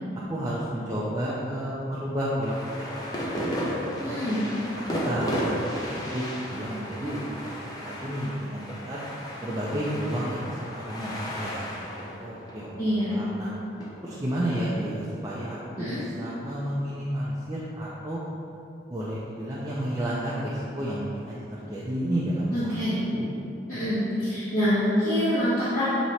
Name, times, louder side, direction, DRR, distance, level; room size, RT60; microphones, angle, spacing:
voice 1, 0.3-3.3 3.6-3.8 4.0-4.3 5.0-7.5 7.8-9.0 9.4-11.7 12.0-13.5 14.0-18.2 18.9-22.8 23.1-23.3, equal, 20° right, -8 dB, 0.5 m, -31 dB
sound 1, 2.4-13.9, equal, 20° left, 0.7 m, -34 dB
voice 2, 4.0-4.4 12.8-13.2 15.8-16.0 22.5-23.0 23.7-25.9, equal, 45° left, -14 dB, 1.4 m, -25 dB
7.8 x 3.0 x 4.1 m, 2.8 s
head